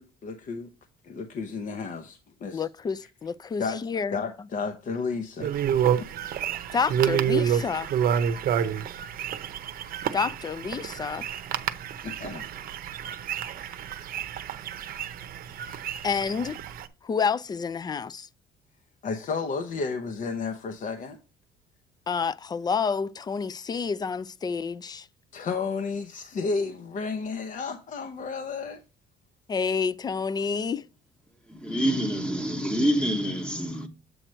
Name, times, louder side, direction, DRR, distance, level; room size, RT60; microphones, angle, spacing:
voice 1, 0.2-0.7 1.0-2.7 3.6-3.8 4.1-5.5 6.0-6.2 12.0-12.4 19.0-21.2 25.3-28.8, left 4 dB, 50° left, 0.9 m, -32 dB
voice 2, 2.5-4.2 6.7-7.9 10.1-11.2 16.0-16.6 17.0-18.3 22.1-25.1 29.5-30.9, left 5 dB, 25° left, 0.4 m, -29 dB
sound 1, 5.4-16.9, right 9 dB, 60° right, 0.7 m, -29 dB
voice 3, 31.5-33.9, equal, 5° left, 1.2 m, -26 dB
7.9 x 2.9 x 6.2 m
cardioid pair, 110°, 17 cm